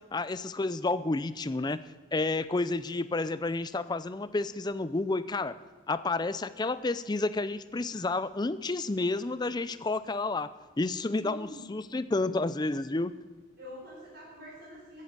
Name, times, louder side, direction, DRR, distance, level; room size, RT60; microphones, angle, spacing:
voice 1, 0.1-5.6 5.9-13.1, left 3 dB, 20° left, 14 dB, 0.4 m, -30 dB
voice 2, 11.1-11.7 13.6-15.0, left 1 dB, 55° right, -5 dB, 4.5 m, -46 dB
14.0 x 8.5 x 8.0 m, 1.5 s
head